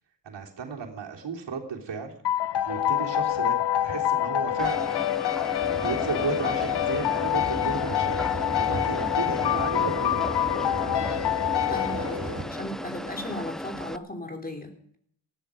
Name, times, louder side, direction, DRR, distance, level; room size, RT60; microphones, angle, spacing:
voice 1, 0.2-2.1 2.6-3.6 3.8-4.9 5.7-10.2 11.9-12.0, right 6 dB, 85° right, 1 dB, 3.3 m, -34 dB
sound 1, 2.2-12.6, left 12 dB, 70° left, 0.6 m, -26 dB
sound 2, 4.6-14.0, equal, ahead, 0.6 m, -36 dB
sound 3, 5.6-12.4, right 2 dB, 25° right, 3.3 m, -36 dB
voice 2, 11.7-15.0, left 1 dB, 20° left, 4 dB, 3.2 m, -36 dB
19.0 x 13.5 x 5.0 m, 0.63 s
wide cardioid pair, 105°, 42 cm